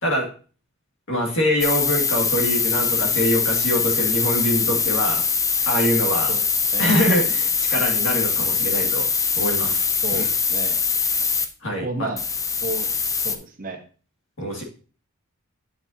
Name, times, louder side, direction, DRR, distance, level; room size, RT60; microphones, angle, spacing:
voice 1, 1.1-5.2 5.7-6.3 6.8-9.1 9.4-9.9 10.1-10.3 11.6-12.1 14.4-14.6, equal, 60° left, 0 dB, 2.4 m, -24 dB
sound 1, 1.6-11.5 12.2-13.4, left 5 dB, 15° left, 0.5 m, -22 dB
voice 2, 10.0-10.8 11.8-12.2 12.6-12.9 13.2-13.8 14.4-14.6, right 2 dB, 40° right, 5 dB, 1.1 m, -31 dB
9.5 x 5.6 x 2.9 m, 0.38 s
head